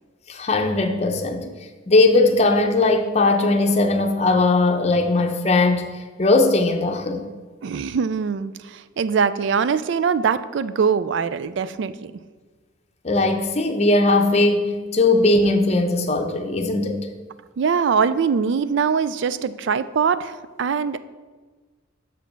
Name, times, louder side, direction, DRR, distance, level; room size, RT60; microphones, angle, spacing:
voice 1, 0.3-1.5 1.9-5.9 6.2-7.2 13.0-17.0, left 2 dB, 35° left, 4 dB, 0.6 m, -19 dB
voice 2, 7.6-12.1 17.6-21.0, right 6 dB, 60° right, 15 dB, 0.3 m, -22 dB
5.8 x 5.1 x 6.7 m, 1.4 s
head